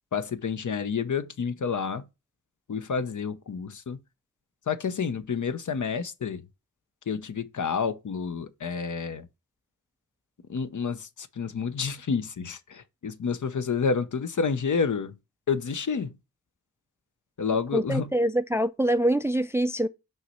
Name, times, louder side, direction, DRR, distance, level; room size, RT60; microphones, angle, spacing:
voice 1, 0.1-2.0 2.7-4.0 4.7-6.4 7.1-9.3 10.5-15.2 15.5-16.1 17.4-18.1, left 5 dB, 55° left, 0.7 m, -29 dB
voice 2, 17.7-19.9, right 1 dB, 10° right, 0.4 m, -25 dB
5.6 x 3.2 x 5.5 m
cardioid pair, 55°, 36 cm